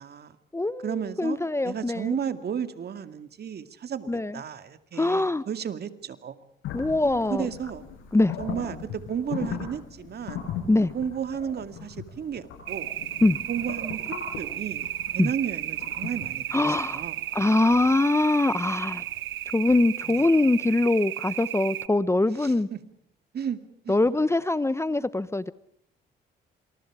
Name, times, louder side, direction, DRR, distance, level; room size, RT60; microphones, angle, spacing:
voice 1, 0.0-0.4 0.8-1.4 1.6-6.3 7.3-7.9 8.4-10.5 10.9-12.9 13.5-16.7 16.9-17.2 20.1-20.2 22.4-22.8 23.3-24.0, right 8 dB, 55° right, 10 dB, 2.3 m, -33 dB
voice 2, 0.5-2.2 4.1-4.3 5.0-5.4 6.7-7.5 8.1-8.3 10.7-10.9 13.2-13.4 15.2-15.3 16.5-17.0 17.3-19.0 19.5-22.7 23.9-25.5, left 2 dB, 15° left, 16 dB, 1.0 m, -23 dB
sound 1, 6.6-19.5, left 7 dB, 85° left, 7.6 m, -39 dB
sound 2, 12.7-21.9, right 13 dB, 80° right, 1.3 m, -34 dB
27.5 x 27.5 x 5.0 m, 0.69 s
cardioid pair, 90°, 20 cm